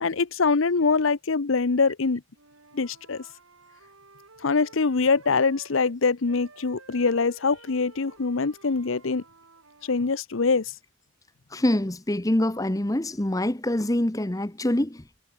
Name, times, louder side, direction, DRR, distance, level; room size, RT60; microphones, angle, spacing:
voice 1, 0.0-2.2 2.7-3.3 4.4-9.2 9.8-10.7, left 4 dB, 75° left, 0.8 m, -24 dB
Wind instrument woodwind instrument, 2.3-6.0 6.2-10.1, right 3 dB, 85° right, 4.3 m, -53 dB
voice 2, 11.5-15.2, left 1 dB, 15° left, 0.9 m, -25 dB
head